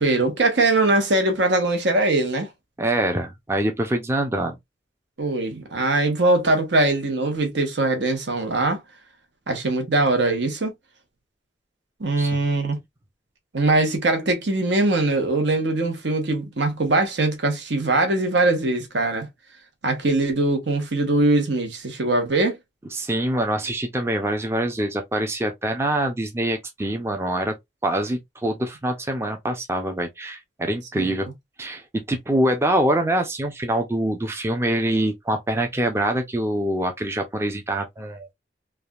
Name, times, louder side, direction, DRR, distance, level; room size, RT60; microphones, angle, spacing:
voice 1, 0.0-2.5 5.2-8.8 9.5-10.7 12.0-12.8 13.5-19.3 19.8-22.6 31.0-31.2, right 2 dB, 85° right, 1.0 m, -21 dB
voice 2, 2.8-4.6 12.2-12.3 22.9-27.6 27.8-31.3 31.6-38.3, right 1 dB, 15° right, 0.4 m, -24 dB
3.2 x 2.4 x 2.3 m
head